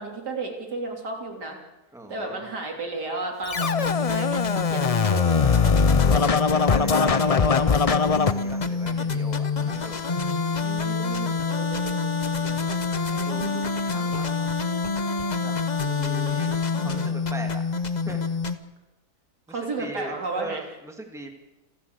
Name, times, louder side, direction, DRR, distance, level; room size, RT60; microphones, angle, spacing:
voice 1, 0.0-1.6 2.1-5.6 10.6-12.3 12.6-12.8 13.1-13.6 16.7-17.1 19.5-20.6, right 3 dB, 80° right, 1 dB, 4.0 m, -34 dB
voice 2, 1.9-2.4 6.0-7.5 8.2-10.1 12.4-12.7 13.1-14.5 15.4-15.6 15.8-16.5 16.8-17.6 18.1-18.3 19.5-21.3, right 2 dB, ahead, 4 dB, 2.3 m, -40 dB
Scratching (performance technique), 3.5-8.3, left 5 dB, 65° left, 0.3 m, -21 dB
sound 1, 3.6-18.6, left 4 dB, 30° left, 1.0 m, -27 dB
28.5 x 11.5 x 8.2 m, 1.0 s
omnidirectional pair, 1.7 m